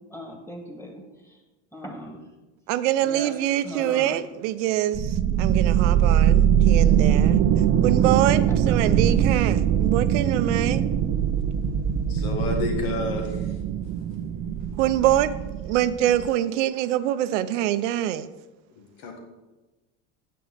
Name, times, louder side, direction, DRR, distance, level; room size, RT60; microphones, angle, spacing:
voice 1, 0.1-1.0 1.7-2.2 3.0-3.3 3.6-4.1 8.7-8.8, equal, 5° left, 2 dB, 2.0 m, -38 dB
voice 2, 2.7-7.4 7.8-10.8 14.8-15.3 15.6-18.3, right 12 dB, 90° right, 13 dB, 0.6 m, -24 dB
Low Sci-fi Bladerunner, 4.9-16.3, right 9 dB, 45° right, 0.6 m, -22 dB
voice 3, 12.1-13.2 19.0-19.2, left 2 dB, 85° left, 3 dB, 1.9 m, -29 dB
9.2 x 7.7 x 3.9 m, 1.1 s
supercardioid pair, 105°, 35 cm